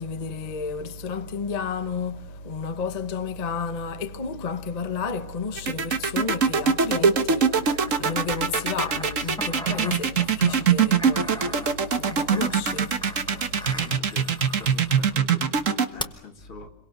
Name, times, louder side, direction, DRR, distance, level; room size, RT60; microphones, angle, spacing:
voice 1, 0.0-14.0, left 5 dB, 30° left, 0.8 m, -32 dB
sound 1, 5.6-15.9, right 6 dB, 45° right, 1.4 m, -22 dB
sound 2, 7.5-15.2 16.0-16.1, left 1 dB, 5° left, 0.5 m, -40 dB
voice 2, 13.7-16.7, left 3 dB, 80° left, 3.4 m, -45 dB
28.5 x 23.0 x 6.6 m
omnidirectional pair, 2.2 m